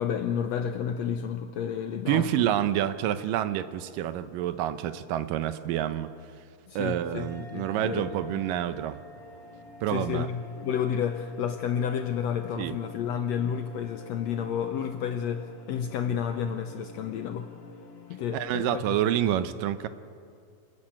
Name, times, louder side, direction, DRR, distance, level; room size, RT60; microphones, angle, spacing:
voice 1, 0.0-2.5 6.7-8.4 9.9-17.5 18.1-19.0, left 8 dB, 75° left, 7 dB, 1.6 m, -31 dB
voice 2, 2.1-6.1 6.8-9.0 9.8-10.3 12.6-12.8 18.3-19.9, right 11 dB, 85° right, 12 dB, 2.5 m, -28 dB
sound 1, 7.2-16.2, right 1 dB, 40° right, 2.0 m, -52 dB
sound 2, 9.1-18.5, left 4 dB, 50° left, 2.0 m, -49 dB
27.5 x 13.0 x 8.9 m, 2.3 s
omnidirectional pair, 3.8 m